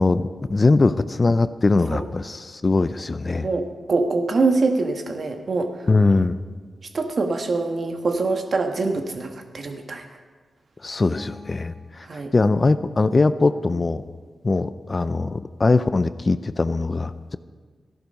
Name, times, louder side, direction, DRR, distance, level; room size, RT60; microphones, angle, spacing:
voice 1, 0.0-3.5 5.9-6.4 10.8-12.1 12.3-14.0 14.4-17.4, left 3 dB, 35° left, 13 dB, 0.5 m, -21 dB
voice 2, 3.4-5.9 6.9-10.1 12.0-12.3, right 3 dB, 55° right, 5 dB, 1.4 m, -24 dB
sound 1, 11.0-12.7, left 1 dB, 5° left, 1.1 m, -45 dB
14.0 x 11.0 x 5.3 m, 1.5 s
cardioid pair, 65°, 0 cm